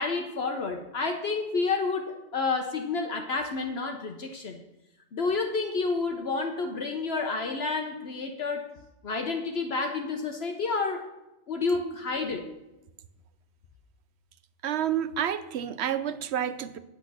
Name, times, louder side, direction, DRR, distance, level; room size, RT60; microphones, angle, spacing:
voice 1, 0.0-4.6 5.1-8.7 9.0-11.0 11.5-12.5, left 4 dB, 60° left, 4 dB, 1.1 m, -30 dB
voice 2, 14.6-16.8, right 9 dB, 70° right, 13 dB, 0.9 m, -29 dB
9.2 x 8.6 x 6.1 m, 0.95 s
omnidirectional pair, 1.2 m